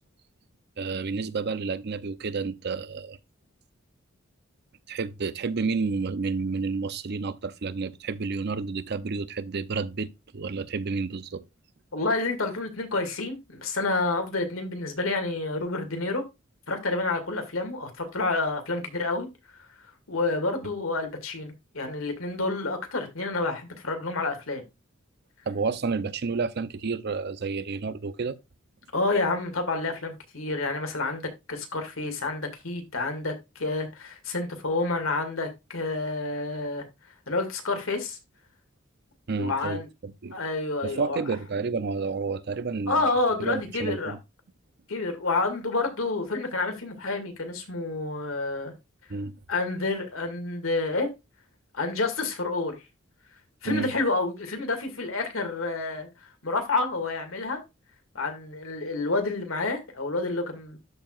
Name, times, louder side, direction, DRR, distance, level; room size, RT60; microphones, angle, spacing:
voice 1, 0.8-3.2 4.9-11.4 25.5-28.3 39.3-40.4 40.8-43.1 43.4-44.2 49.1-49.4 53.6-53.9, right 4 dB, 55° right, 0.6 m, -30 dB
voice 2, 11.9-16.2 16.7-19.3 20.1-24.6 28.9-33.3 33.6-36.8 37.3-38.2 39.4-39.9 40.3-41.2 42.9-44.1 44.9-48.7 49.5-51.1 51.7-52.8 53.6-56.1 56.4-57.6 58.1-60.8, left 3 dB, 85° left, 2.2 m, -29 dB
13.0 x 4.6 x 2.4 m
head